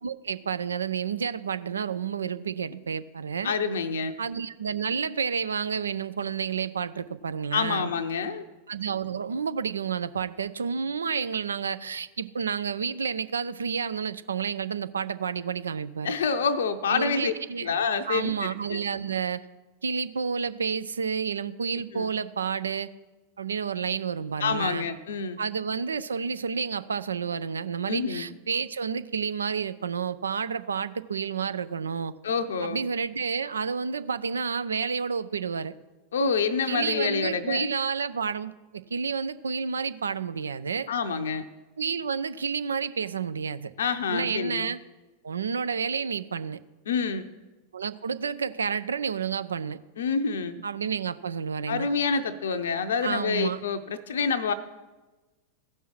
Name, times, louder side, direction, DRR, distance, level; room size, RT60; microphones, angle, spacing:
voice 1, 0.0-3.5 4.2-7.9 8.7-16.2 16.9-17.7 18.1-19.4 19.8-22.9 23.4-24.9 25.4-32.1 32.6-35.7 36.7-40.9 41.8-43.7 44.1-44.8 45.2-46.6 47.7-49.8 50.6-51.9 53.0-53.6, right 6 dB, 70° right, 14 dB, 0.4 m, -30 dB
voice 2, 3.4-4.1 7.5-8.4 16.0-17.3 17.6-18.8 21.8-22.1 24.4-25.4 27.9-28.2 32.2-32.8 36.1-37.7 40.9-41.4 43.8-44.7 46.9-47.3 50.0-50.6 51.7-54.5, left 5 dB, 65° left, 8 dB, 0.6 m, -27 dB
15.0 x 5.5 x 5.9 m, 1.2 s
figure-of-eight pair, 90°, 0 cm